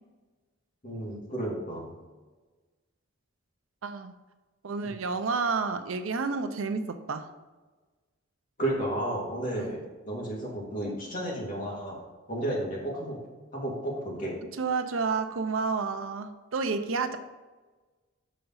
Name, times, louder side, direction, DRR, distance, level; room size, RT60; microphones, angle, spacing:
voice 1, 0.8-2.0 4.8-4.9 8.6-9.8 10.1-12.0 12.3-13.2 13.5-14.3, right 1 dB, 45° left, -4 dB, 2.4 m, -32 dB
voice 2, 3.8-4.1 4.6-7.3 9.5-9.8 14.6-17.2, right 4 dB, 80° right, 9 dB, 0.6 m, -30 dB
6.8 x 5.1 x 4.0 m, 1.3 s
head